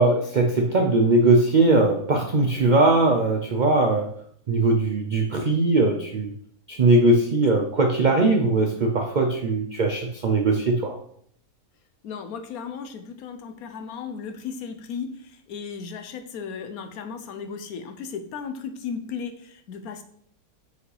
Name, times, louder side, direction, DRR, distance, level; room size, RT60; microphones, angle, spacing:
voice 1, 0.0-4.1 4.5-6.3 6.7-11.0, right 2 dB, 70° right, 3 dB, 0.4 m, -20 dB
voice 2, 12.0-15.1 15.5-20.0, left 6 dB, 75° left, 8 dB, 1.1 m, -35 dB
6.2 x 4.9 x 3.3 m, 0.66 s
omnidirectional pair, 1.6 m